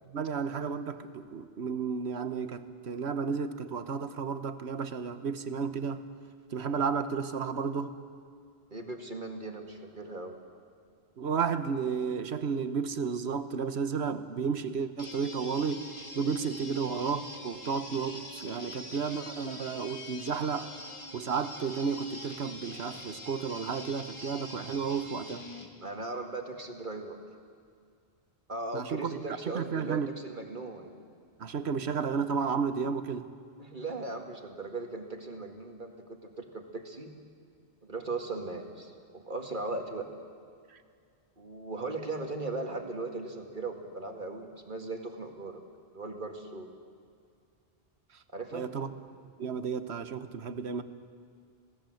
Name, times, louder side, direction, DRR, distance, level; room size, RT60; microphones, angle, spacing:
voice 1, 0.1-6.0 6.5-8.0 11.2-15.9 16.1-20.7 21.1-25.4 28.7-30.1 31.4-33.3 40.7-40.8 48.5-48.9 49.4-50.8, right 6 dB, 75° right, 11 dB, 1.4 m, -32 dB
voice 2, 8.7-10.4 25.8-27.2 28.5-31.0 33.6-37.1 37.8-40.1 41.4-45.6 45.9-46.7 48.3-48.8, right 3 dB, 45° right, 4 dB, 2.2 m, -38 dB
sound 1, 15.0-25.7, left 1 dB, 25° left, 1.9 m, -44 dB
27.0 x 18.0 x 7.9 m, 2.2 s
omnidirectional pair, 1.1 m